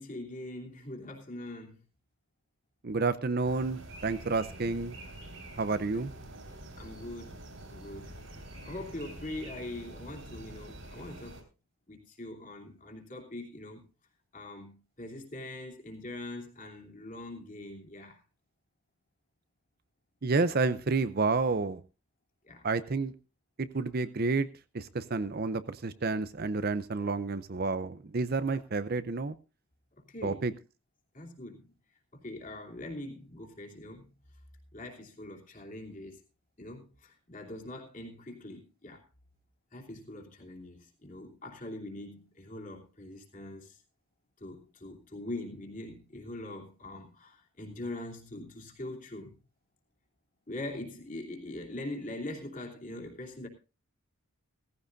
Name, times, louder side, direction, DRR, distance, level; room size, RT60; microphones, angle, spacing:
voice 1, 0.0-1.8 6.5-8.2 8.6-11.4 11.9-13.8 14.3-18.2 22.4-22.7 30.1-30.4 31.1-31.7 32.1-34.0 34.7-36.2 36.6-39.0 39.7-43.8 44.4-49.4 50.5-53.5, left 1 dB, 35° left, 2.9 m, -42 dB
voice 2, 2.8-5.0 5.6-6.1 20.2-21.8 22.6-23.1 23.6-24.5 24.7-29.3 30.2-30.5, right 3 dB, 45° right, 0.6 m, -30 dB
sound 1, 3.4-11.4, right 1 dB, 65° right, 3.9 m, -46 dB
17.0 x 15.0 x 2.6 m
head